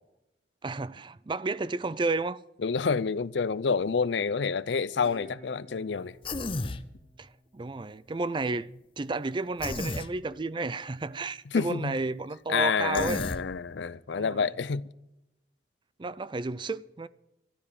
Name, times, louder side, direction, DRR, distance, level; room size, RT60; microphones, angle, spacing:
voice 1, 0.6-2.4 7.2-13.2 14.2-14.5 16.0-17.1, right 3 dB, 25° right, 0.4 m, -32 dB
voice 2, 2.6-6.2 11.5-12.0 12.5-14.9, left 5 dB, 85° left, 0.5 m, -28 dB
Guitar, 4.9-8.2, equal, 60° right, 4.2 m, -52 dB
Human voice, 6.2-6.8 9.6-10.1 12.9-13.4, left 2 dB, 30° left, 0.8 m, -32 dB
13.0 x 12.0 x 6.7 m
head